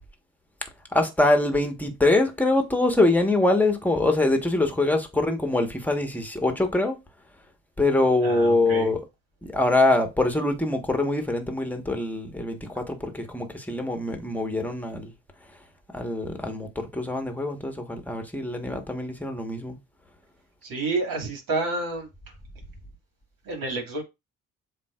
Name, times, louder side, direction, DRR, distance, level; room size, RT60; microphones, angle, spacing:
voice 1, 0.9-7.0 7.8-9.0 9.4-15.1 15.9-19.8, left 2 dB, 5° left, 1.3 m, -24 dB
voice 2, 8.2-8.9 20.6-22.1 23.4-24.0, right 3 dB, 55° right, 2.3 m, -29 dB
7.4 x 2.7 x 2.5 m
hypercardioid pair, 55°, 40 cm